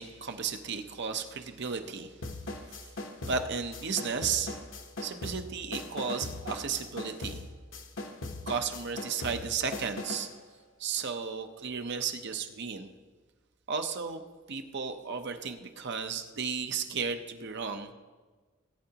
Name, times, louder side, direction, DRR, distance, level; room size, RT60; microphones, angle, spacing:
voice 1, 0.0-2.1 3.3-4.5 5.0-7.4 8.5-10.3 10.8-12.9 13.7-14.2 14.5-17.9, right 6 dB, 55° right, 7 dB, 0.8 m, -34 dB
sound 1, 2.2-10.4, left 2 dB, 65° left, 1.1 m, -40 dB
18.0 x 8.9 x 2.9 m, 1.4 s
head